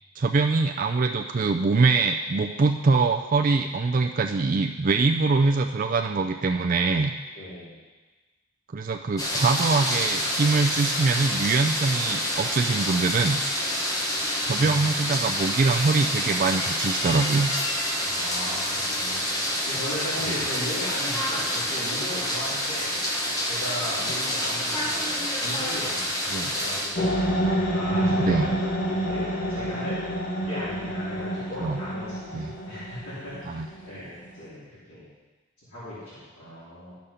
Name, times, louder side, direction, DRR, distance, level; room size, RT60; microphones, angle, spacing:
voice 1, 0.2-7.1 8.7-13.4 14.4-17.5 20.3-20.4 26.3-26.5 27.8-28.5 31.6-31.8 32.3-32.5 33.5-33.7, right 4 dB, 40° right, 3 dB, 0.4 m, -23 dB
voice 2, 7.3-7.7 14.5-15.5 18.0-19.3 19.6-22.9 23.4-27.2 27.7-28.5 29.0-30.1 30.5-32.3 32.6-34.6 34.9-35.0 35.7-36.9, left 1 dB, 75° left, -13 dB, 3.4 m, -37 dB
sound 1, 9.2-26.9, equal, 15° left, 1.0 m, -27 dB
sound 2, 26.9-34.3, equal, 35° left, 1.5 m, -28 dB
12.0 x 5.3 x 5.6 m, 1.2 s
head